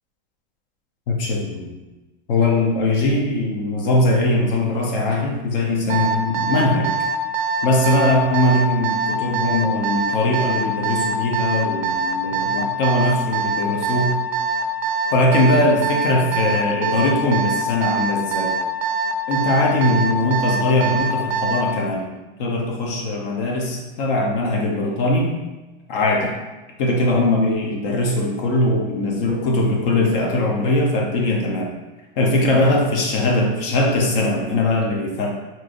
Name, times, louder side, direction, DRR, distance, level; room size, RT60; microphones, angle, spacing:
voice 1, 1.1-1.7 2.3-6.9 7.6-14.2 15.1-18.5 19.3-22.1 22.4-25.4 25.9-26.3 26.8-31.7 32.1-35.3, left 1 dB, 65° left, 0 dB, 0.8 m, -20 dB
Alarm, 5.9-21.7, right 5 dB, 40° right, 0.4 m, -23 dB
3.1 x 2.8 x 2.5 m, 1.1 s
supercardioid pair, 140°, 30 cm